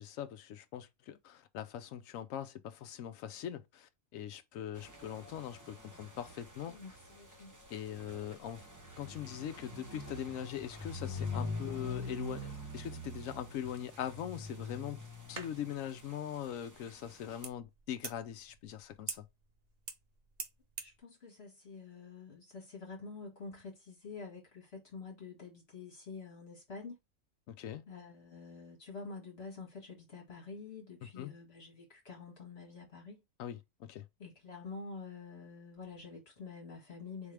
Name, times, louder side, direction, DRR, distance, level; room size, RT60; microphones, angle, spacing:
voice 1, 0.0-6.8 7.7-8.6 9.0-15.0 15.3-19.3 27.5-27.8 31.2-31.3 33.4-34.0, left 10 dB, 75° left, 1.0 m, -42 dB
sound 1, 4.7-17.4, left 2 dB, 15° right, 0.9 m, -45 dB
voice 2, 6.7-7.6 20.8-27.0 27.9-33.2 34.2-37.3, left 4 dB, 50° left, 2.0 m, -48 dB
sound 2, 15.2-21.0, right 5 dB, 45° right, 0.5 m, -48 dB
4.3 x 3.5 x 3.3 m
omnidirectional pair, 1.4 m